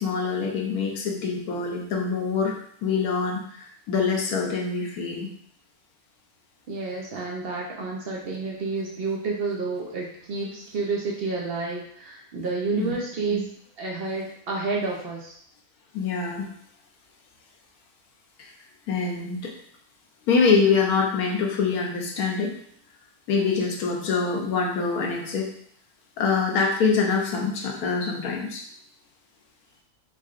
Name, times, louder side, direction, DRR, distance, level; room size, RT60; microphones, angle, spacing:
voice 1, 0.0-2.5 2.8-5.3 12.8-12.9 13.3-13.4 15.9-16.5 18.4-18.5 18.9-19.5 20.3-22.5 23.3-25.5 26.2-28.6, left 5 dB, 80° left, 0 dB, 1.2 m, -25 dB
voice 2, 6.7-13.5 13.8-15.3, right 4 dB, 65° right, -2 dB, 0.6 m, -30 dB
3.7 x 3.3 x 2.4 m, 0.65 s
omnidirectional pair, 1.6 m